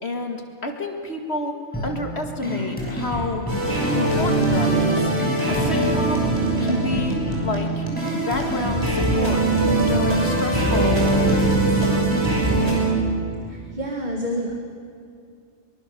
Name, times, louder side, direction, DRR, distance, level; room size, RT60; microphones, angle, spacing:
voice 1, 0.0-3.5 3.9-5.1 5.5-6.3 6.6-7.9 8.3-9.4 9.8-11.8, left 2 dB, 60° left, 4 dB, 2.4 m, -29 dB
sound 1, 1.7-12.7, equal, 5° left, 6.4 m, -29 dB
sound 2, 3.5-12.9, right 2 dB, 20° right, 6.0 m, -22 dB
voice 2, 13.4-14.6, equal, 35° right, 1 dB, 2.4 m, -28 dB
25.0 x 23.5 x 6.9 m, 2.4 s
omnidirectional pair, 1.3 m